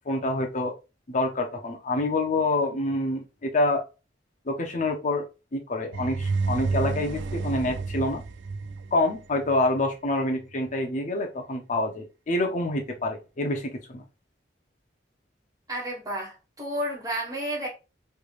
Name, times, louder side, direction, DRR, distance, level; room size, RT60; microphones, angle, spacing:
voice 1, 0.1-0.7 1.1-3.8 4.5-5.2 5.5-8.2 8.9-14.0, left 2 dB, 45° left, 0.6 m, -27 dB
sound 1, 5.9-9.8, right 4 dB, 85° right, 0.4 m, -30 dB
voice 2, 15.7-17.7, right 1 dB, 20° right, 1.5 m, -31 dB
3.3 x 3.2 x 2.4 m
head